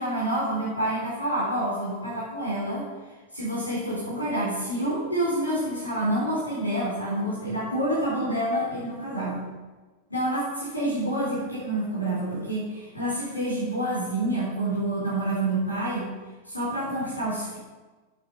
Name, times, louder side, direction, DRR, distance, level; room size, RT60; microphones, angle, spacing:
voice 1, 0.0-9.5 10.1-16.2 16.4-17.6, right 1 dB, 85° left, -7 dB, 3.8 m, -28 dB
9.6 x 7.9 x 6.8 m, 1.3 s
figure-of-eight pair, 90°, 0 cm